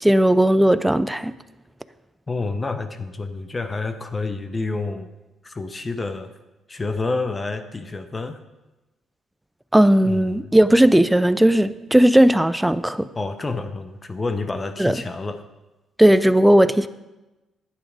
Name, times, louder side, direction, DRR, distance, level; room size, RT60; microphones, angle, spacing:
voice 1, 0.0-1.3 9.7-13.1 14.8-14.9 16.0-16.9, right 1 dB, 5° right, 14 dB, 0.5 m, -16 dB
voice 2, 2.3-5.1 5.4-6.3 6.7-8.4 10.0-10.5 13.1-15.4, left 3 dB, 25° left, 9 dB, 0.9 m, -28 dB
11.0 x 8.6 x 5.1 m, 1.1 s
cardioid pair, 90°, 0 cm